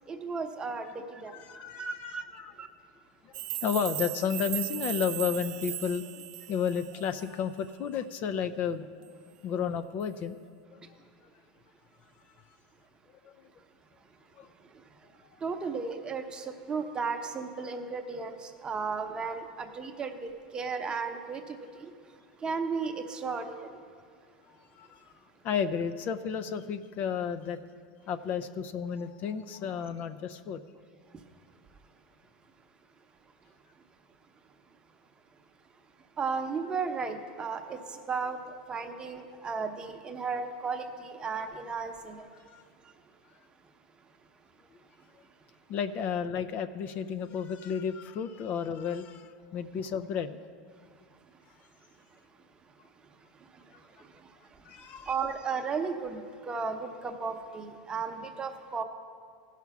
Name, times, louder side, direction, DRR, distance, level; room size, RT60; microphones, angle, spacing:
voice 1, 0.1-1.4 1.8-2.2 2.6-2.7 14.6-15.1 15.4-21.9 22.4-23.8 31.1-31.2 36.2-42.3 42.8-42.9 53.0-58.8, right 5 dB, 20° right, 5 dB, 0.9 m, -35 dB
voice 2, 1.3-2.5 3.3-8.9 9.4-10.4 10.7-11.0 13.2-13.3 14.4-14.5 24.7-25.1 25.4-27.6 28.1-30.6 42.5-42.6 45.7-50.4 54.6-55.1, left 7 dB, 45° left, 10 dB, 0.4 m, -32 dB
sound 1, 3.3-7.3, right 15 dB, 70° right, 0.4 m, -37 dB
15.0 x 5.8 x 6.0 m, 2.1 s
supercardioid pair, 120°, 4 cm